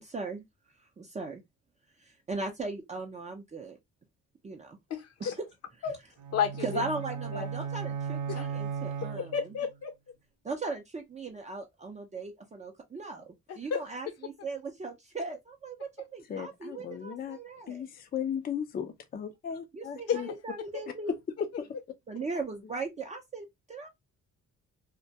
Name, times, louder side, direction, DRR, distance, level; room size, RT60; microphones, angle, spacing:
voice 1, 0.0-0.4 1.0-1.4 2.0-3.8 4.4-4.8 5.2-5.3 6.6-9.5 10.4-17.8 19.7-21.1 22.1-23.9, right 3 dB, 25° right, 0.5 m, -38 dB
voice 2, 4.9-5.3 5.8-5.9 6.3-6.8 7.3-7.5 8.3-8.5 9.2-9.9 13.5-13.8 20.1-20.2, left 7 dB, 55° left, 0.8 m, -31 dB
sound 1, 6.2-9.7, right 6 dB, 85° right, 0.6 m, -36 dB
voice 3, 16.3-17.4 17.7-20.3 21.6-21.7, left 8 dB, 30° left, 0.5 m, -36 dB
2.2 x 2.1 x 2.7 m
cardioid pair, 90°, 30 cm